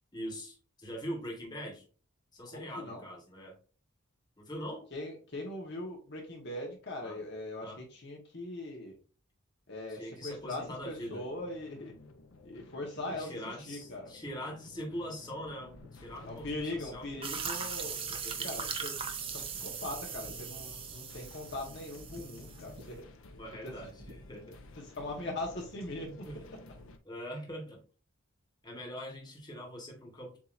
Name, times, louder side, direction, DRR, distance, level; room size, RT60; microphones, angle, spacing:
voice 1, 0.1-1.8 2.3-3.6 4.4-4.9 7.0-7.2 7.6-7.8 9.9-11.2 13.1-17.1 18.1-18.7 23.4-24.6 26.0-26.4 27.0-27.8 28.6-30.4, equal, 20° left, -1 dB, 1.3 m, -42 dB
voice 2, 2.5-3.0 4.9-9.0 9.7-11.9 12.4-14.1 16.3-18.9 19.3-23.0 23.6-23.7 24.8-26.4, left 2 dB, 55° left, 0 dB, 1.1 m, -41 dB
sound 1, 10.2-27.0, left 2 dB, 75° left, 0.7 m, -53 dB
sound 2, 15.4-18.7 19.0-19.6 19.9-21.6 22.1-22.3 22.7-23.2 24.0-24.2, equal, 55° right, 0.8 m, -54 dB
sound 3, 17.2-22.8, right 6 dB, 25° right, 0.5 m, -39 dB
7.2 x 2.8 x 2.5 m, 0.37 s
head